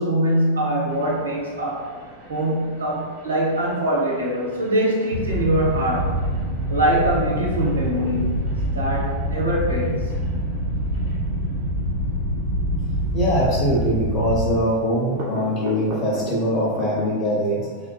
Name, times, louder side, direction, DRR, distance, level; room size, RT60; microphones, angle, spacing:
voice 1, 0.0-1.9 2.3-6.2 6.7-10.1, right 1 dB, 75° right, -4 dB, 0.7 m, -23 dB
sound 1, 0.9-17.2, right 1 dB, 45° right, 1.1 m, -41 dB
sound 2, 5.1-14.6, equal, 85° left, 0.6 m, -25 dB
voice 2, 13.1-17.7, equal, 30° left, -3 dB, 0.5 m, -22 dB
3.5 x 2.5 x 2.2 m, 1.5 s
figure-of-eight pair, 90°, 0 cm